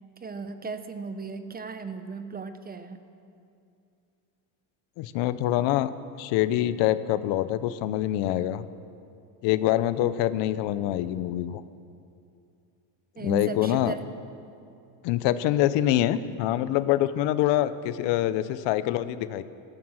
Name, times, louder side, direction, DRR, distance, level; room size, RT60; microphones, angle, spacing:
voice 1, 0.2-3.0 13.2-14.0, right 4 dB, 20° right, 10 dB, 0.8 m, -36 dB
voice 2, 5.0-5.9 6.2-8.6 9.4-11.6 13.2-13.9 15.0-19.4, left 13 dB, 70° left, 14 dB, 0.8 m, -25 dB
15.5 x 13.5 x 6.4 m, 2.6 s
cardioid pair, 120°, 45 cm